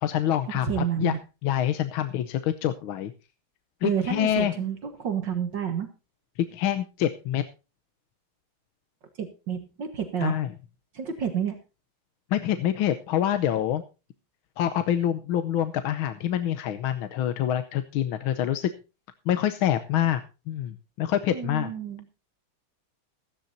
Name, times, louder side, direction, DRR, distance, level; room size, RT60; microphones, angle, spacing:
voice 1, 0.0-1.2 1.4-3.1 3.8-4.7 6.5-7.4 10.2-10.5 12.3-13.8 14.6-18.7 19.3-21.7, left 11 dB, 80° left, 10 dB, 1.6 m, -26 dB
voice 2, 0.7-1.2 3.8-5.9 9.2-10.4 10.9-11.6 21.3-22.0, right 8 dB, 65° right, 8 dB, 2.1 m, -29 dB
16.0 x 13.5 x 2.7 m, 0.30 s
omnidirectional pair, 2.2 m